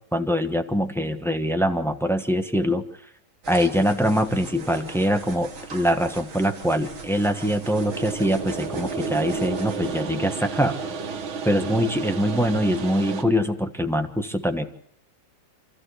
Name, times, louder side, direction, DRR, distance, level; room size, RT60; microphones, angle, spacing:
voice 1, 0.1-2.8 3.5-10.8 11.4-14.7, equal, ahead, 5 dB, 0.8 m, -23 dB
sound 1, 3.4-10.0, right 4 dB, 40° right, 2.3 m, -42 dB
sound 2, 4.1-13.2, right 5 dB, 80° right, 2.3 m, -33 dB
28.5 x 13.5 x 8.3 m, 0.71 s
omnidirectional pair, 2.2 m